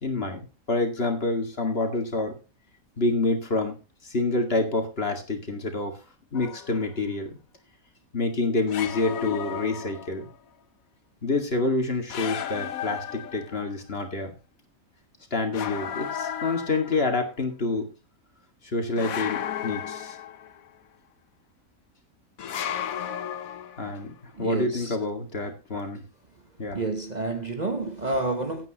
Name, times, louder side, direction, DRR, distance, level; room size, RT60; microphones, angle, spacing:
voice 1, 0.0-2.4 3.0-3.8 4.0-6.0 6.3-7.4 8.1-10.3 11.2-14.3 15.3-17.9 18.6-20.2 23.8-26.0 26.6-26.8, left 3 dB, 45° left, 2.4 m, -27 dB
sound 1, 6.3-6.9 8.7-10.3 12.1-13.8 15.5-17.2 19.0-20.7 22.4-24.0, left 9 dB, 85° left, 1.3 m, -34 dB
voice 2, 24.3-25.0 26.7-28.7, right 2 dB, 35° right, 1.1 m, -29 dB
16.5 x 8.9 x 3.0 m
omnidirectional pair, 1.4 m